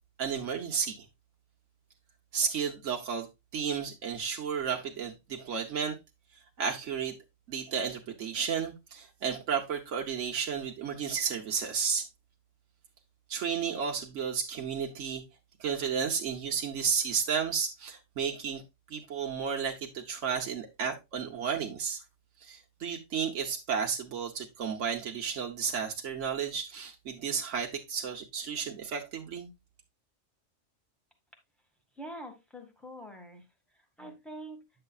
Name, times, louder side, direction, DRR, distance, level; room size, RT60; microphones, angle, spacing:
voice 1, 0.2-1.1 2.3-3.3 3.5-6.0 6.6-7.1 7.5-12.1 13.3-15.2 15.6-18.6 18.9-22.0 22.4-29.5, right 6 dB, 80° right, 1.3 m, -32 dB
voice 2, 31.9-33.4 33.7-34.7, right 1 dB, ahead, 1.8 m, -45 dB
9.7 x 6.7 x 2.3 m
omnidirectional pair, 1.2 m